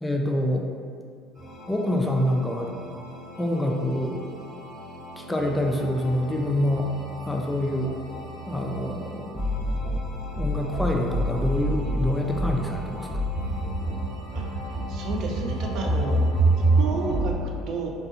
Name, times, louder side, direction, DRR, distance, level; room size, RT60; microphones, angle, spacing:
voice 1, 0.0-0.7 1.7-2.7 3.4-4.2 5.2-6.9 7.2-7.9 8.5-9.8 10.4-13.2, left 1 dB, 10° left, 1 dB, 0.3 m, -26 dB
sound 1, 1.4-17.3, right 1 dB, 40° right, 1.2 m, -29 dB
voice 2, 14.3-16.3 16.8-17.9, right 4 dB, 65° right, 0 dB, 0.4 m, -32 dB
2.5 x 2.4 x 2.5 m, 2.1 s
supercardioid pair, 85°, 0 cm